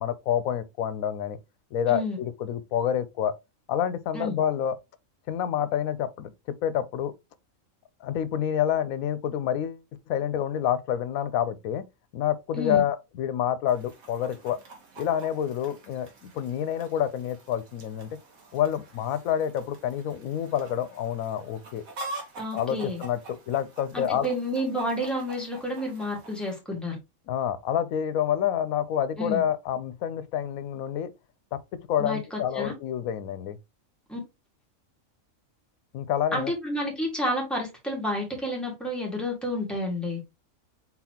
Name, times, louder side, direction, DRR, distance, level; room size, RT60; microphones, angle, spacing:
voice 1, 0.0-1.4 1.7-3.4 3.7-4.8 5.3-7.1 8.0-9.8 10.1-11.8 12.1-14.6 15.0-18.1 18.5-21.8 22.5-24.3 27.3-31.1 31.5-31.6 31.9-33.6 35.9-36.5, left 9 dB, 85° left, 1.0 m, -28 dB
voice 2, 1.9-2.2 4.1-4.4 12.5-12.8 22.4-23.0 23.9-27.0 29.2-29.4 32.0-32.7 34.1-34.2 36.3-40.2, left 1 dB, ahead, 1.7 m, -30 dB
Chicken rooster, 13.7-26.6, right 2 dB, 80° right, 1.7 m, -46 dB
4.2 x 4.1 x 2.8 m
omnidirectional pair, 1.4 m